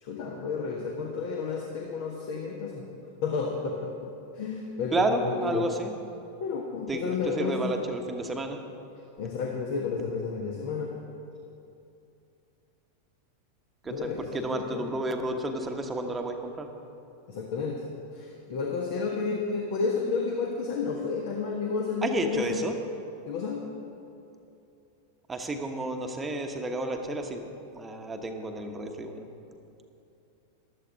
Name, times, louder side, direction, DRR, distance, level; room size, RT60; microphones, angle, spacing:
voice 1, 0.0-2.8 3.2-3.9 4.3-5.7 6.4-7.7 9.2-10.9 13.9-14.9 17.3-17.9 18.1-22.6 23.3-23.6, left 5 dB, 50° left, 1 dB, 1.2 m, -31 dB
voice 2, 4.9-5.9 6.9-8.6 13.8-16.7 22.0-22.7 25.3-27.5 27.7-29.3, right 2 dB, 15° right, 4 dB, 1.1 m, -31 dB
15.0 x 12.0 x 4.0 m, 2.7 s
figure-of-eight pair, 90°, 0 cm